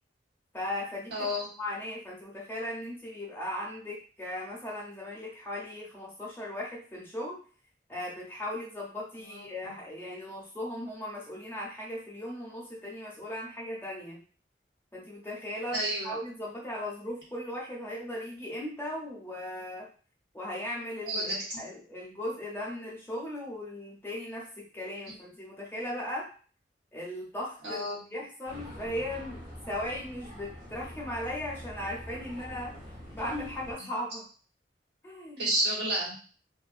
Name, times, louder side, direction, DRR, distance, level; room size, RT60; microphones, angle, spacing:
voice 1, 0.5-1.2 1.6-7.4 7.9-14.2 14.9-19.9 20.3-26.3 26.9-27.8 28.1-32.7 33.1-34.2 35.0-35.5, left 1 dB, 15° left, -4 dB, 0.7 m, -37 dB
voice 2, 1.1-1.5 9.2-9.7 15.7-16.2 21.0-21.6 27.6-28.0 33.8-33.9 35.4-36.2, right 1 dB, 75° right, -7 dB, 1.4 m, -31 dB
sound 1, 28.5-33.7, equal, 50° right, 1.2 m, -45 dB
2.5 x 2.5 x 2.5 m, 0.40 s
head